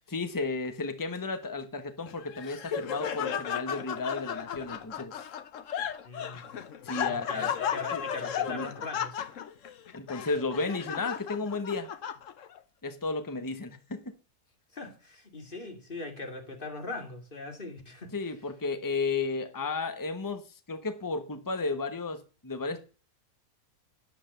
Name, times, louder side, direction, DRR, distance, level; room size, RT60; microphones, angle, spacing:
voice 1, 0.1-5.2 6.8-7.5 7.9-8.7 9.9-11.9 12.8-14.1 18.1-20.4 20.7-22.8, left 3 dB, 15° left, 1.1 m, -33 dB
Laughter, 2.1-12.6, left 8 dB, 60° left, 1.1 m, -35 dB
voice 2, 6.0-6.4 7.0-9.2 14.7-18.2, left 3 dB, 35° left, 2.8 m, -40 dB
9.7 x 8.2 x 6.7 m
omnidirectional pair, 1.6 m